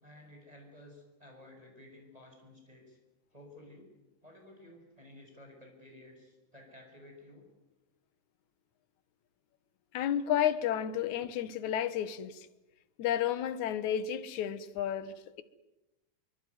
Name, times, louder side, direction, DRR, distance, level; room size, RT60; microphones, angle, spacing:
voice 1, 0.0-3.0 3.3-3.9 4.2-7.5, left 1 dB, 10° right, 5.9 m, -54 dB
voice 2, 9.9-12.5 13.0-15.4, left 10 dB, 65° left, 2.4 m, -32 dB
24.0 x 23.5 x 9.6 m
omnidirectional pair, 4.0 m